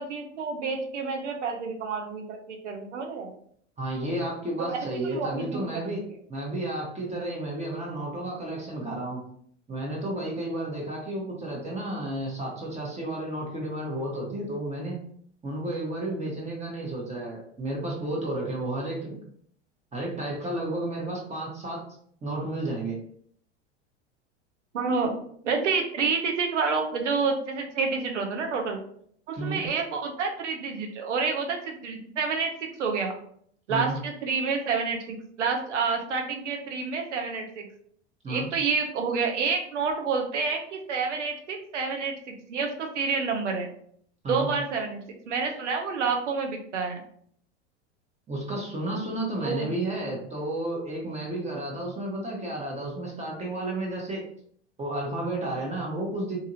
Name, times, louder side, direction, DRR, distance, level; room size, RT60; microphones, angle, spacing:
voice 1, 0.0-3.3 4.7-5.9 24.7-25.1 25.4-28.8 29.3-33.1 33.7-37.7 38.3-43.7 44.3-47.0 49.4-49.7, right 5 dB, 90° right, 3 dB, 0.7 m, -29 dB
voice 2, 3.8-9.2 9.7-15.0 15.4-19.2 19.9-21.9 22.2-23.0 29.4-29.6 33.7-34.0 38.2-38.5 44.2-44.5 48.3-54.2 54.8-56.4, right 1 dB, 20° right, -2 dB, 0.9 m, -32 dB
2.8 x 2.6 x 2.6 m, 0.63 s
hypercardioid pair, 95°, 35 cm